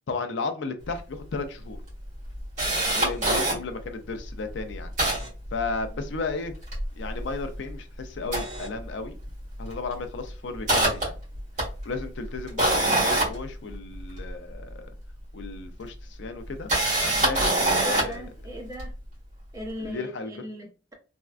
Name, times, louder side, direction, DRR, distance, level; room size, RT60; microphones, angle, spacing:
voice 1, 0.1-1.8 2.8-4.9 5.5-6.5 7.0-9.2 9.6-11.1 11.9-14.9 15.3-16.7 17.0-18.3 19.8-20.5, left 4 dB, 70° left, 0.5 m, -34 dB
Camera, 1.0-1.1 1.3-1.4 1.9-3.6 4.2-4.3 4.5-6.2 6.5-7.7 8.2-9.3 9.6-9.9 10.3-14.3 15.4-15.5 16.4-18.2 18.8-18.9, right 1 dB, 40° right, 1.6 m, -25 dB
voice 2, 17.3-18.9 19.5-20.9, equal, 15° right, 0.6 m, -39 dB
3.5 x 2.2 x 2.4 m
head